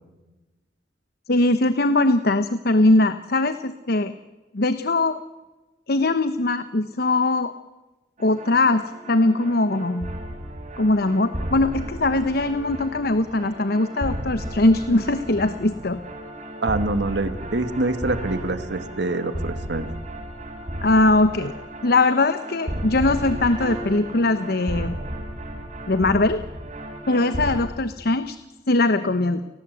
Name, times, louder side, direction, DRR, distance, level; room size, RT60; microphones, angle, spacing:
voice 1, 1.3-4.1 4.5-5.2 5.9-7.5 8.2-10.1 10.8-16.0 20.8-21.5 21.8-25.0 25.9-26.4 27.1-28.4 28.7-29.4, left 2 dB, 60° left, 11 dB, 1.0 m, -21 dB
sound 1, 8.2-27.6, right 1 dB, 45° right, 5.0 m, -34 dB
voice 2, 16.6-19.9, right 2 dB, 70° right, 10 dB, 1.7 m, -25 dB
30.0 x 19.0 x 8.1 m, 1.2 s
head